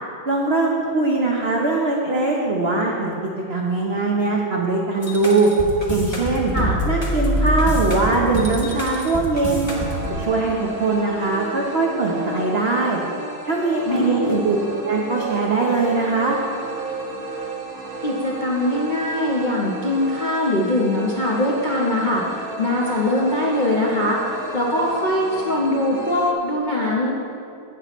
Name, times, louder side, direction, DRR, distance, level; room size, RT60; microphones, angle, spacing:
voice 1, 0.3-3.1 3.5-5.5 5.9-6.5 6.9-9.7 10.1-13.0 13.4-14.6 14.8-16.4, right 3 dB, 65° right, -2 dB, 0.6 m, -21 dB
sound 1, 5.0-10.1, equal, 20° left, 0.9 m, -24 dB
sound 2, 9.7-26.3, right 2 dB, 20° right, 0.5 m, -33 dB
voice 2, 13.9-14.4 18.0-24.2 24.5-27.1, left 1 dB, 65° left, -4 dB, 0.4 m, -22 dB
17.0 x 5.9 x 3.0 m, 2.6 s
omnidirectional pair, 2.2 m